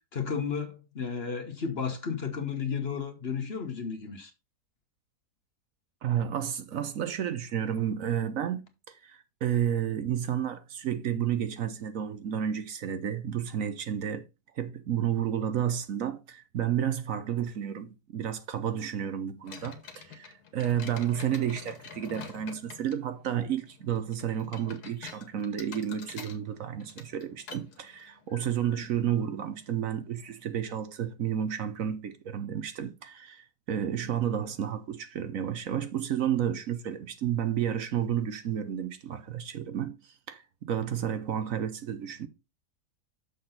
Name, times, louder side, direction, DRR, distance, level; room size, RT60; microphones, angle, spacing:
voice 1, 0.1-4.3, left 6 dB, 45° left, 1.2 m, -33 dB
voice 2, 6.0-8.6 8.9-14.2 14.6-40.0 40.3-42.3, right 9 dB, 65° right, 1.1 m, -31 dB
sound 1, 19.4-30.4, left 6 dB, 80° left, 1.8 m, -48 dB
6.7 x 6.0 x 3.9 m
omnidirectional pair, 1.6 m